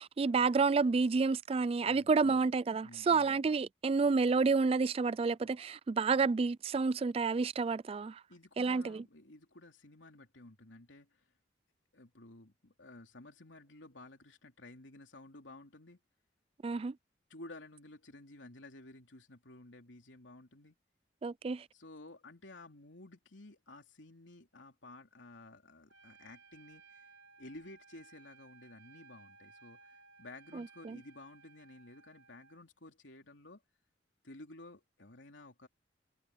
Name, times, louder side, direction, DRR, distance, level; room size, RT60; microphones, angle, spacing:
voice 1, 0.0-8.2 8.6-9.0 16.6-16.9 21.2-21.6 30.6-31.0, right 4 dB, 30° right, 0.3 m, -30 dB
voice 2, 1.8-2.4 2.8-3.4 8.3-11.2 11.9-16.0 17.3-20.7 21.7-27.0 27.4-33.6 34.2-35.7, left 2 dB, 85° left, 3.3 m, -53 dB
Trumpet, 25.9-32.6, right 5 dB, 80° right, 4.8 m, -60 dB
head